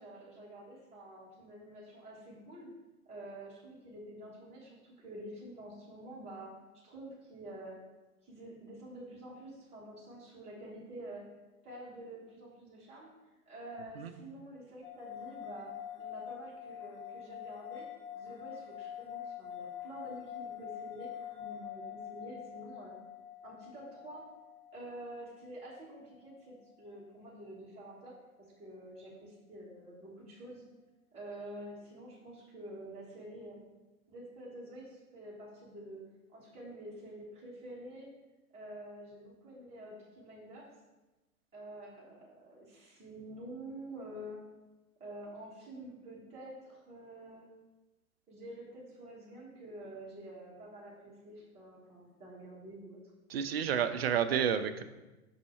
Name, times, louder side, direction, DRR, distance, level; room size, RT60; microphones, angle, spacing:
voice 1, 0.0-2.7 3.0-6.5 6.8-7.8 8.2-11.2 11.6-13.1 13.5-15.7 16.0-17.9 18.1-21.1 21.4-22.9 23.4-24.2 24.7-28.1 28.6-30.6 31.1-33.6 34.1-36.0 36.3-38.1 38.5-40.7 41.5-44.4 45.0-47.5 48.3-53.0, right 1 dB, 15° right, -7 dB, 1.5 m, -48 dB
sound 1, 14.8-26.2, left 9 dB, 10° left, 1.2 m, -45 dB
voice 2, 53.3-54.8, right 8 dB, 45° right, 9 dB, 0.5 m, -30 dB
5.5 x 4.1 x 4.4 m, 1.1 s
figure-of-eight pair, 105°, 44 cm